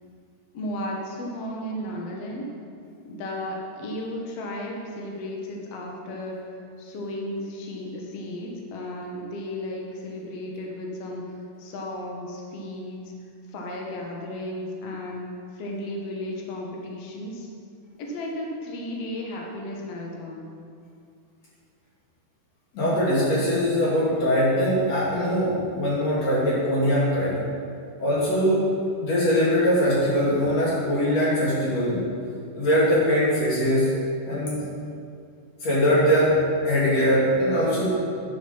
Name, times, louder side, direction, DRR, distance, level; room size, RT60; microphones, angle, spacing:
voice 1, 0.5-2.5 3.0-6.5 6.8-11.3 11.6-13.1 13.5-17.5 18.0-20.5, left 1 dB, 85° left, -1 dB, 1.3 m, -34 dB
voice 2, 22.7-27.4 28.0-28.7 29.0-32.0 32.5-33.9 34.3-34.6 35.6-36.3 36.6-37.9, equal, 45° left, -8 dB, 3.8 m, -22 dB
10.0 x 6.9 x 5.4 m, 2.4 s
omnidirectional pair, 4.6 m